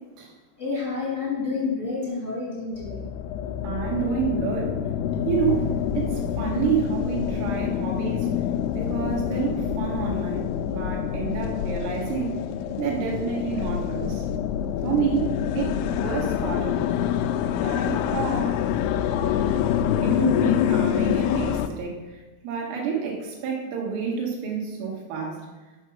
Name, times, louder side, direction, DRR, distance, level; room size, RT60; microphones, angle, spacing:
voice 1, 0.6-3.0, left 4 dB, 60° left, -7 dB, 0.7 m, -29 dB
sound 1, 2.7-21.7, left 9 dB, 90° left, 3.1 m, -26 dB
voice 2, 3.6-4.8 5.3-8.3 8.7-12.4 12.8-14.2 14.8-16.9 17.6-18.6 20.0-22.0 22.4-25.4, right 6 dB, 85° right, -1 dB, 4.3 m, -29 dB
8.6 x 5.8 x 6.2 m, 1.2 s
omnidirectional pair, 5.6 m